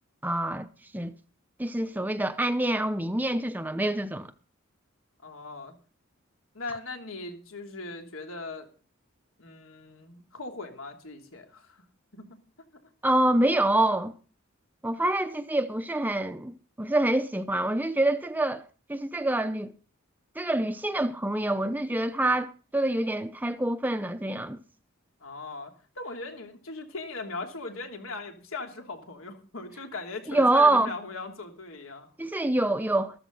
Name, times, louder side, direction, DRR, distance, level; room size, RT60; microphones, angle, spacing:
voice 1, 0.2-0.7 0.9-1.1 1.6-4.3 13.0-14.1 14.8-16.5 16.8-18.6 18.9-19.7 20.4-24.6 30.3-30.9 32.2-33.2, right 1 dB, 10° right, 0.6 m, -26 dB
voice 2, 5.2-5.7 6.5-8.7 9.4-11.8 12.1-12.4 25.2-32.1, left 3 dB, 80° left, 3.1 m, -39 dB
14.0 x 13.5 x 4.0 m
head